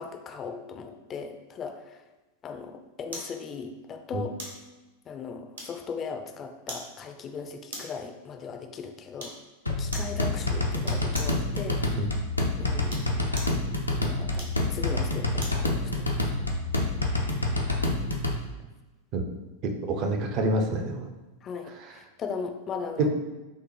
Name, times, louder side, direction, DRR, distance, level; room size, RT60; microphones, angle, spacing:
voice 1, 0.0-2.0 2.4-4.3 5.1-9.3 9.7-11.8 12.6-13.0 13.9-16.1 21.4-23.1, left 5 dB, 25° left, 5 dB, 0.4 m, -38 dB
sound 1, 3.1-3.4 4.4-4.6 5.6-6.0 6.7-6.9 7.7-8.0 9.2-9.4 9.9-10.2 10.8-11.4 12.7-13.6 14.3-15.6 16.1-16.2, right 1 dB, 65° right, 0.9 m, -40 dB
sound 2, 9.7-18.4, left 2 dB, 85° left, 0.5 m, -27 dB
voice 2, 19.6-21.1 23.0-23.1, right 2 dB, 40° right, 4 dB, 0.5 m, -27 dB
5.3 x 2.0 x 3.2 m, 1.2 s
figure-of-eight pair, 90°, 0 cm